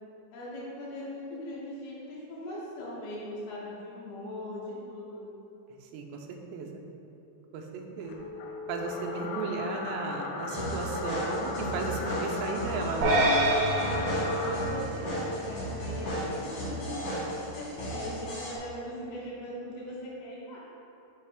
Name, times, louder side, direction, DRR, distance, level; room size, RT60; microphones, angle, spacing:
voice 1, 0.3-5.3 11.6-12.2 13.5-17.2 17.5-20.6, equal, 75° left, -8 dB, 2.8 m, -39 dB
voice 2, 5.8-6.7 7.5-8.2 8.7-13.2, right 4 dB, 90° right, 2 dB, 2.8 m, -35 dB
sound 1, 8.0-14.7, left 3 dB, 90° left, 2.9 m, -37 dB
sound 2, 10.5-18.5, equal, 55° left, 2.4 m, -35 dB
sound 3, 13.0-15.5, right 1 dB, 75° right, 2.4 m, -27 dB
6.0 x 5.5 x 3.4 m, 2.9 s
omnidirectional pair, 4.9 m